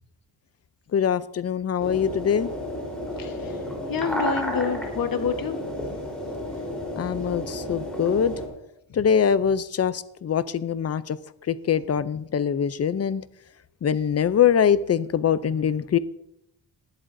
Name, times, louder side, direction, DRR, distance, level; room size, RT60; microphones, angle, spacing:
voice 1, 0.9-2.5 7.0-8.4 8.9-11.2 11.5-13.2 13.8-16.0, left 8 dB, 35° left, 15 dB, 0.4 m, -23 dB
sound 1, 1.8-8.5, left 1 dB, ahead, 3.7 m, -32 dB
voice 2, 3.2-3.6 3.9-5.7 8.9-9.0, left 6 dB, 50° left, 7 dB, 1.2 m, -28 dB
19.0 x 11.5 x 2.6 m, 0.82 s
wide cardioid pair, 150°, 43 cm